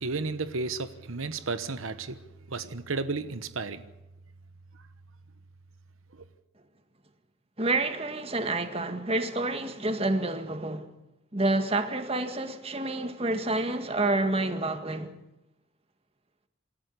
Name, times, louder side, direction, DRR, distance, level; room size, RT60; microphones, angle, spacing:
voice 1, 0.0-2.2 2.5-3.9, right 3 dB, 85° right, 1.1 m, -33 dB
voice 2, 7.6-10.9 11.3-15.1, right 2 dB, 30° right, 1.8 m, -28 dB
27.0 x 13.5 x 8.4 m
head